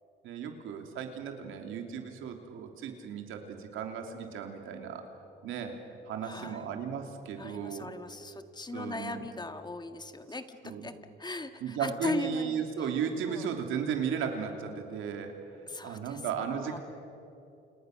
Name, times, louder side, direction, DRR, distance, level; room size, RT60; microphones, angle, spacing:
voice 1, 0.2-5.1 5.4-5.8 6.1-7.9 8.7-9.3 10.6-10.9 11.6-16.8, right 7 dB, 90° right, 4 dB, 3.1 m, -35 dB
voice 2, 6.2-6.6 7.4-12.6 13.3-13.5 15.7-16.2 16.6-16.8, left 3 dB, 20° left, 8 dB, 1.7 m, -38 dB
29.5 x 29.0 x 6.6 m, 2.9 s
cardioid pair, 90°, 20 cm